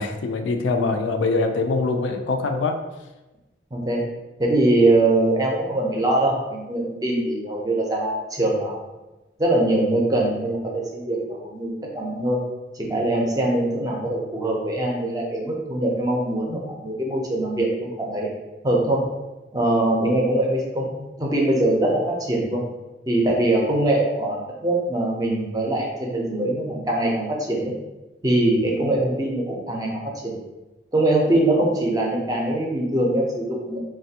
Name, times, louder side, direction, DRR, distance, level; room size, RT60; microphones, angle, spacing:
voice 1, 0.0-2.8, left 3 dB, 90° left, 5 dB, 0.3 m, -23 dB
voice 2, 3.7-4.1 4.4-8.9 9.4-12.4 12.7-18.3 18.6-19.0 19.5-22.6 23.1-27.7 28.2-30.3 30.9-33.8, right 1 dB, 20° right, -1 dB, 0.5 m, -22 dB
3.2 x 2.2 x 2.7 m, 1.1 s
head